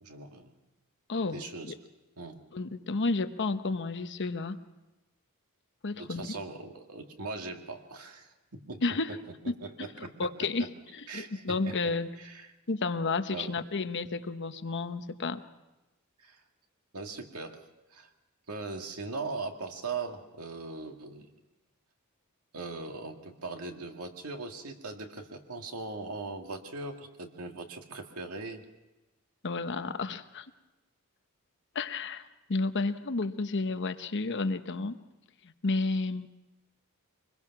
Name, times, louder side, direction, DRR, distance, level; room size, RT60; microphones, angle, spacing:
voice 1, 0.0-0.5 1.3-1.7 2.2-2.4 5.9-8.8 9.1-10.7 11.1-12.5 13.3-13.6 16.2-16.4 16.9-17.6 17.9-18.1 18.5-21.3 22.5-28.6, right 3 dB, 90° right, 4 dB, 2.0 m, -40 dB
voice 2, 1.1-1.4 2.5-4.6 5.8-6.2 8.8-9.1 9.5-9.6 10.2-10.7 11.1-12.1 12.7-15.4 29.4-30.4 31.7-35.0 35.4-36.3, left 3 dB, 55° left, 9 dB, 0.9 m, -31 dB
24.5 x 21.5 x 6.0 m, 1.0 s
head